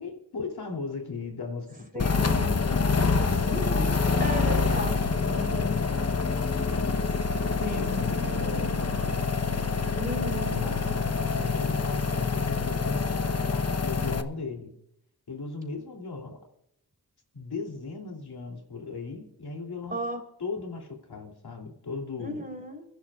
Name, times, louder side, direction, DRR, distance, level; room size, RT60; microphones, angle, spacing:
voice 1, 0.0-3.7 5.5-7.2 7.6-9.3 10.4-14.7 15.3-16.4 17.3-20.0 20.4-22.4, left 4 dB, 75° left, 2 dB, 3.1 m, -38 dB
voice 2, 1.9-2.6 3.5-5.7 7.6-8.1 10.0-10.7 19.9-20.2 22.2-22.9, equal, 25° right, 3 dB, 3.7 m, -35 dB
sound 1, 2.0-14.2, left 4 dB, 40° left, 1.0 m, -26 dB
28.5 x 11.5 x 2.4 m, 0.76 s
cardioid pair, 55°, 38 cm